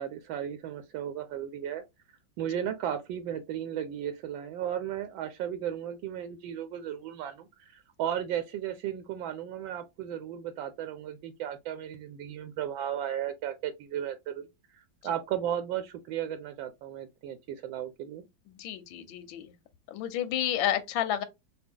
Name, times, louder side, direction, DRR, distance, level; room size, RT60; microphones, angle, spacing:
voice 1, 0.0-1.8 2.4-18.3, right 10 dB, 85° right, 1.3 m, -35 dB
voice 2, 18.6-19.5 19.9-21.2, left 11 dB, 90° left, 1.4 m, -30 dB
4.2 x 2.3 x 3.5 m
omnidirectional pair, 2.1 m